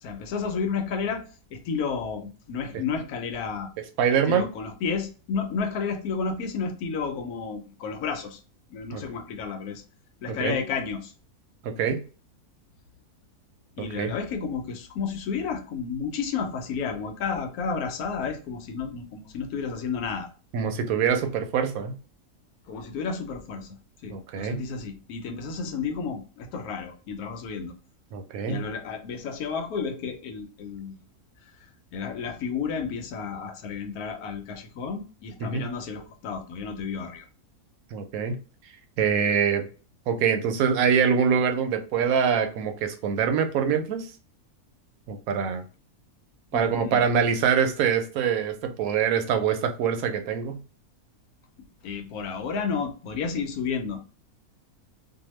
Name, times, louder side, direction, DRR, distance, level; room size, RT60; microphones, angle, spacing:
voice 1, 0.0-3.7 4.3-8.4 8.7-9.8 10.2-11.1 13.8-20.3 22.7-23.8 24.0-27.7 28.5-31.1 31.4-37.3 46.5-47.0 51.8-54.0, left 5 dB, 85° left, 6 dB, 1.1 m, -32 dB
voice 2, 4.0-4.5 8.9-9.0 10.4-10.5 11.6-12.0 14.0-14.1 20.5-21.9 24.1-24.6 28.1-28.6 35.5-35.7 37.9-38.4 39.0-39.7 40.1-44.1 45.1-45.6 46.5-50.6, right 7 dB, 75° right, 7 dB, 1.0 m, -24 dB
2.7 x 2.2 x 3.0 m, 0.35 s
omnidirectional pair, 1.5 m